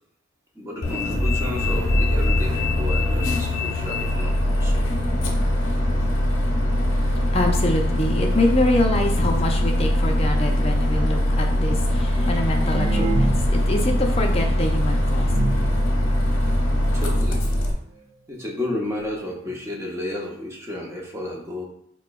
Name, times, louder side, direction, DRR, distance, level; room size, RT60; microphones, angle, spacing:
voice 1, 0.5-4.9 6.8-7.2 16.4-16.6 16.9-17.4 18.3-21.7, left 1 dB, 15° right, 0.6 m, -32 dB
Bus, 0.8-17.7, left 1 dB, 65° left, 0.7 m, -22 dB
voice 2, 6.9-15.4, left 1 dB, 30° left, 0.4 m, -25 dB
sound 1, 12.1-13.7 14.0-14.1 14.7-14.8 15.1-15.8 16.5-16.6 16.9-17.0 17.3-17.6 18.4-18.5 18.8-18.9 19.5-19.6 19.8-19.9, right 2 dB, 70° right, 0.7 m, -27 dB
4.2 x 2.9 x 2.3 m
head